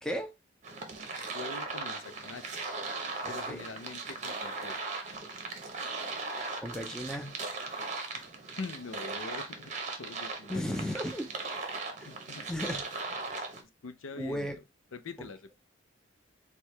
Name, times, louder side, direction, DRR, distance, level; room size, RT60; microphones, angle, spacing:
voice 1, 0.0-0.3 3.2-3.6 6.6-7.4 10.5-11.3 12.0-12.1 12.5-12.8 14.2-14.6, equal, 5° left, 0.5 m, -35 dB
sound 1, 0.6-13.6, right 3 dB, 35° right, 0.8 m, -38 dB
voice 2, 1.3-2.6 3.3-4.8 8.1-8.2 8.6-9.7 10.0-10.9 12.0-12.5 13.8-14.5 14.9-15.5, left 4 dB, 85° left, 0.5 m, -44 dB
4.5 x 2.3 x 3.2 m
head